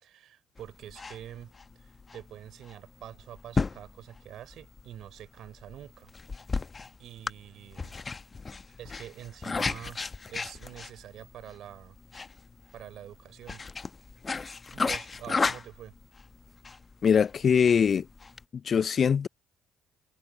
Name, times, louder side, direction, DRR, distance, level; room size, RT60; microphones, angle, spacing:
voice 1, 0.0-6.1 6.4-6.6 7.0-7.9 8.8-10.0 10.3-12.0 12.7-13.6 14.7-15.9, right 11 dB, 65° right, 4.1 m, -46 dB
sound 1, 0.6-18.4, left 4 dB, 30° left, 1.0 m, -35 dB
voice 2, 17.0-18.1 18.6-19.3, left 7 dB, 45° left, 0.3 m, -22 dB
hypercardioid pair, 55°, 0 cm